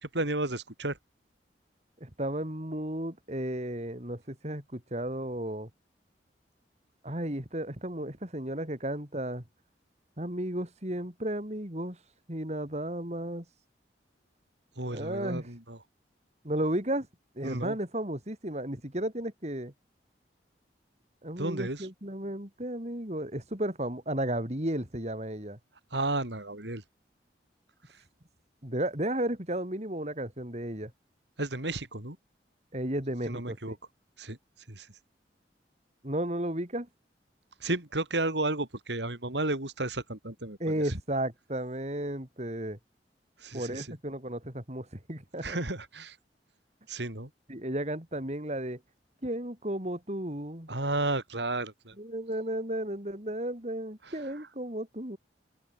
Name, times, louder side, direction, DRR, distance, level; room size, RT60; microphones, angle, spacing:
voice 1, 0.0-1.0 14.8-15.8 17.4-17.8 21.4-21.9 25.9-26.8 27.9-28.0 31.4-32.2 33.3-33.8 34.2-34.4 34.7-34.9 37.6-41.0 43.4-43.9 45.4-46.2 46.9-47.3 50.7-52.0 54.0-54.1, right 2 dB, 75° right, 4.5 m, -33 dB
voice 2, 2.0-5.7 7.0-9.4 10.2-12.0 12.3-13.4 14.9-15.5 16.4-17.1 17.3-19.7 21.2-25.6 28.6-30.9 32.7-33.6 36.0-36.9 40.6-42.8 43.5-45.6 47.5-48.8 49.2-50.7 52.0-55.2, right 1 dB, 40° right, 4.4 m, -33 dB
open air
head